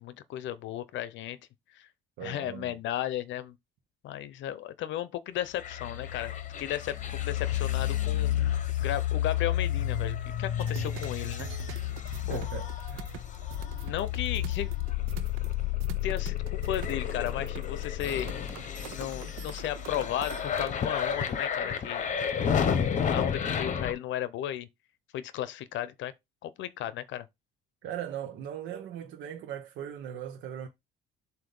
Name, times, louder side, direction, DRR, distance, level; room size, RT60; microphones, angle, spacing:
voice 1, 0.0-1.4 1.7-1.9 2.2-3.6 4.0-6.3 6.6-11.5 12.3-12.5 13.8-14.7 16.0-18.3 18.9-22.1 22.4-22.8 23.1-24.7 25.1-26.1 26.4-27.3, left 12 dB, 65° left, 0.7 m, -35 dB
voice 2, 2.2-2.8 12.3-13.1 27.8-30.7, right 9 dB, 60° right, 0.9 m, -39 dB
sound 1, 5.6-23.9, left 9 dB, 35° left, 1.0 m, -31 dB
sound 2, 10.6-20.7, right 12 dB, 90° right, 0.7 m, -45 dB
7.7 x 2.7 x 5.3 m
cardioid pair, 150°, 21 cm